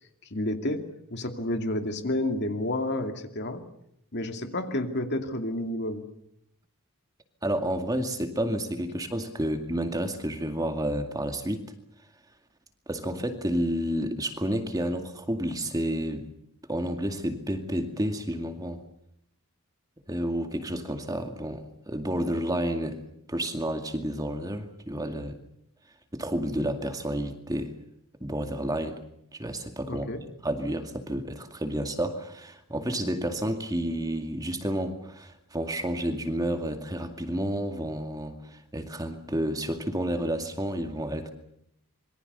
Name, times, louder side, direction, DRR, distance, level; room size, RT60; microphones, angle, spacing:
voice 1, 0.3-3.6 4.1-6.1 29.9-30.2, left 1 dB, 50° left, 6 dB, 2.5 m, -30 dB
voice 2, 7.4-11.7 12.9-16.3 16.7-18.8 20.1-23.0 23.3-25.4 26.1-27.7 28.2-29.0 29.4-41.3, right 1 dB, 15° right, 6 dB, 2.2 m, -30 dB
26.5 x 23.5 x 6.9 m, 0.74 s
head